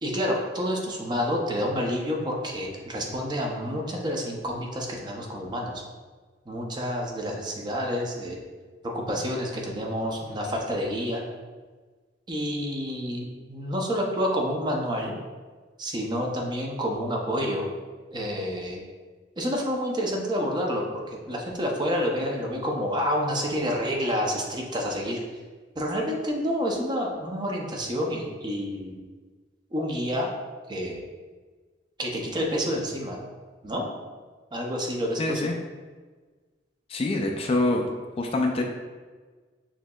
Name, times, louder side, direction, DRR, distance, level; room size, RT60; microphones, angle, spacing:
voice 1, 0.0-5.8 6.5-8.4 8.8-11.2 12.3-15.1 15.8-17.7 18.1-18.8 19.4-25.2 25.8-29.0 29.7-30.3 30.7-31.0 32.0-33.2 33.6-33.9 34.5-35.4, equal, 25° right, 0 dB, 0.6 m, -29 dB
voice 2, 35.2-35.5 36.9-37.9 38.2-38.6, left 2 dB, 30° left, 3 dB, 0.3 m, -25 dB
6.2 x 2.8 x 2.3 m, 1.4 s
head